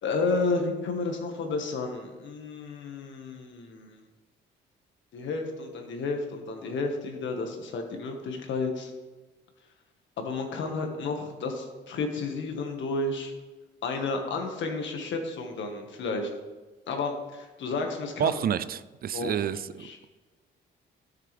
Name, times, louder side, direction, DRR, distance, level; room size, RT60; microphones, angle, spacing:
voice 1, 0.0-4.0 5.1-8.9 10.2-13.3 13.8-16.3 16.9-18.4 19.1-19.3 19.8-20.0, left 3 dB, 70° left, 3 dB, 1.6 m, -31 dB
voice 2, 18.2-19.9, right 9 dB, 50° right, 16 dB, 0.4 m, -29 dB
13.0 x 6.7 x 3.4 m, 1.2 s
cardioid pair, 90°, 20 cm